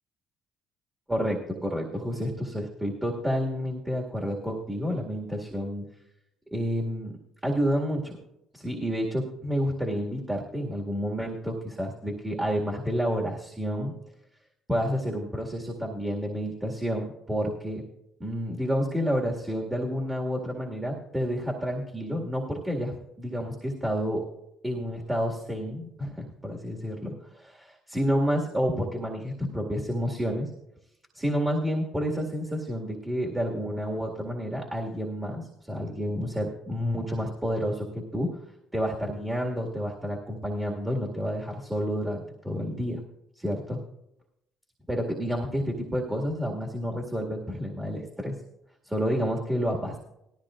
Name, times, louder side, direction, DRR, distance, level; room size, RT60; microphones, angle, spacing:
voice 1, 1.1-5.8 6.5-7.1 7.4-8.2 8.5-13.9 14.7-17.8 18.2-24.2 24.6-30.5 31.1-38.3 38.7-43.0 43.4-43.8 44.9-48.4 48.8-50.0, equal, 15° right, -1 dB, 2.1 m, -29 dB
18.0 x 13.5 x 2.5 m, 0.84 s
supercardioid pair, 70°, 0 cm